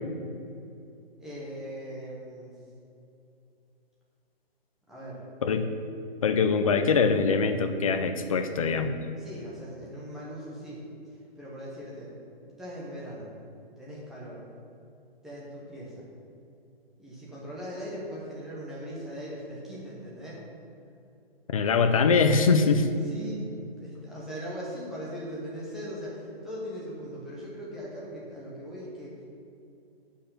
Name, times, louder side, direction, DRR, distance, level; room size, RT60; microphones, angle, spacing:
voice 1, 1.2-2.5 4.9-5.2 9.2-10.8 11.1-12.1 12.6-13.3 13.8-14.4 15.2-16.1 17.0-20.4 23.0-29.2, equal, ahead, -7 dB, 0.7 m, -40 dB
voice 2, 6.2-8.9 21.5-22.9, left 5 dB, 35° left, 8 dB, 0.6 m, -23 dB
8.5 x 5.7 x 7.1 m, 2.6 s
hypercardioid pair, 165°, 31 cm